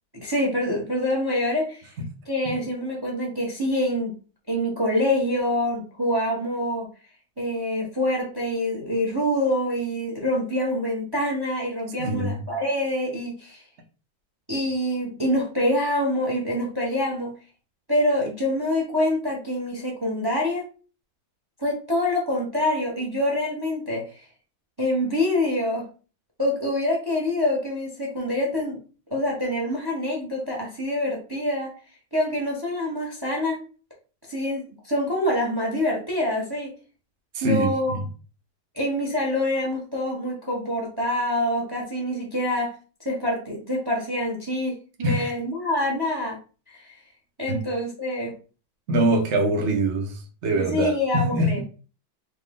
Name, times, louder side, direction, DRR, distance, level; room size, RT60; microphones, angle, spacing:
voice 1, 0.1-1.9 2.3-4.1 4.5-6.9 7.4-13.6 14.5-17.3 17.9-20.7 21.6-24.0 24.8-25.8 26.4-28.8 29.1-31.7 32.1-33.6 34.3-36.7 37.4-38.0 38.7-42.7 43.0-46.4 46.7-47.0 47.4-48.3 50.7-51.6, left 1 dB, 20° right, -1 dB, 0.7 m, -26 dB
voice 2, 12.0-12.4 37.3-38.1 45.0-45.3 47.5-47.6 48.9-51.6, right 1 dB, 85° right, 2 dB, 0.6 m, -24 dB
4.4 x 2.4 x 3.6 m, 0.36 s
omnidirectional pair, 2.3 m